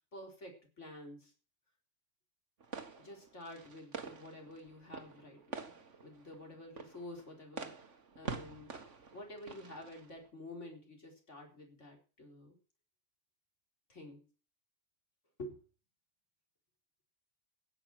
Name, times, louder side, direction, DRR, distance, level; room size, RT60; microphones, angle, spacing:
voice 1, 0.1-1.3 3.0-7.8 8.2-8.7 9.1-12.6 13.9-14.2 15.4-15.6, left 1 dB, 70° left, 2 dB, 4.7 m, -50 dB
sound 1, 2.6-10.3, right 5 dB, 75° right, 2.0 m, -47 dB
15.5 x 9.3 x 6.0 m, 0.35 s
omnidirectional pair, 1.3 m